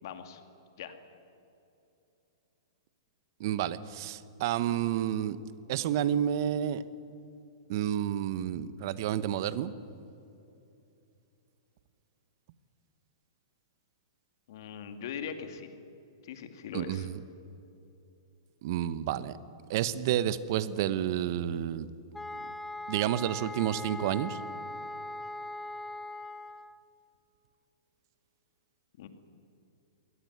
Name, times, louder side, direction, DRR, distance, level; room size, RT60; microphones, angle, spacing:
voice 1, 0.0-0.4 0.8-1.0 14.5-15.7 16.2-17.1 29.0-29.1, left 7 dB, 60° left, 8 dB, 2.3 m, -41 dB
voice 2, 3.4-5.4 5.7-6.8 7.7-9.7 16.7-17.2 18.6-19.3 19.7-21.9 22.9-24.4, right 11 dB, 55° right, 15 dB, 1.0 m, -30 dB
sound 1, 22.1-26.8, left 2 dB, 5° left, 0.6 m, -40 dB
22.0 x 18.0 x 9.6 m, 2.8 s
hypercardioid pair, 135°, 2 cm